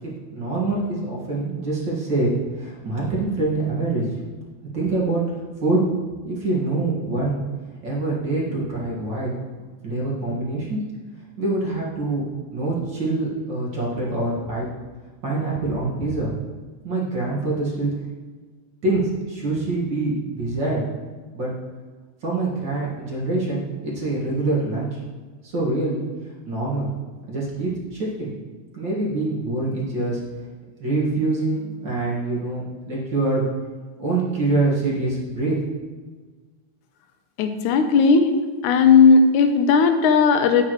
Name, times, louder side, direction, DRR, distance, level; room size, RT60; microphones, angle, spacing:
voice 1, 0.0-4.1 4.7-5.3 5.6-5.8 6.2-7.4 7.8-9.3 9.8-10.8 11.4-12.2 12.5-14.7 15.2-16.3 16.8-17.9 18.8-20.8 21.3-21.5 22.2-25.0 25.4-26.0 26.5-26.9 27.3-28.3 28.7-30.2 30.8-33.4 34.0-35.6, right 2 dB, 40° right, -5 dB, 2.3 m, -25 dB
voice 2, 37.4-38.3 38.6-40.7, left 5 dB, 85° left, 7 dB, 2.2 m, -16 dB
10.5 x 8.7 x 3.1 m, 1.4 s
omnidirectional pair, 3.4 m